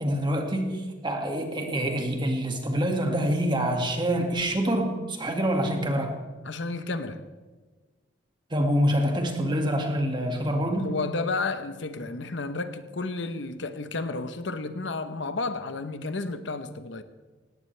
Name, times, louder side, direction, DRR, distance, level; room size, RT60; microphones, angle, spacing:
voice 1, 0.0-6.2 8.5-10.9, equal, 25° right, 2.1 m, -26 dB
voice 2, 6.4-7.3 10.8-17.0, left 3 dB, 70° left, 1.0 m, -32 dB
18.5 x 17.0 x 3.4 m
head